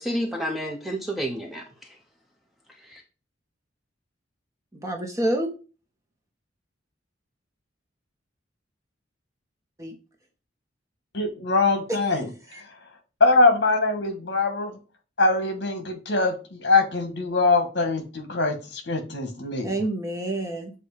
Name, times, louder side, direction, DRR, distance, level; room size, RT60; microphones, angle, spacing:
voice 1, 0.0-1.9 2.9-3.0, equal, ahead, 2 dB, 0.7 m, -30 dB
voice 2, 4.7-5.5 9.8-10.0 11.9-12.0 12.5-12.6 19.6-20.7, right 1 dB, 15° right, 1 dB, 1.2 m, -28 dB
voice 3, 11.1-12.2 13.2-14.7 15.2-19.7, left 3 dB, 60° left, 5 dB, 1.5 m, -22 dB
7.5 x 2.7 x 4.9 m, 0.33 s
head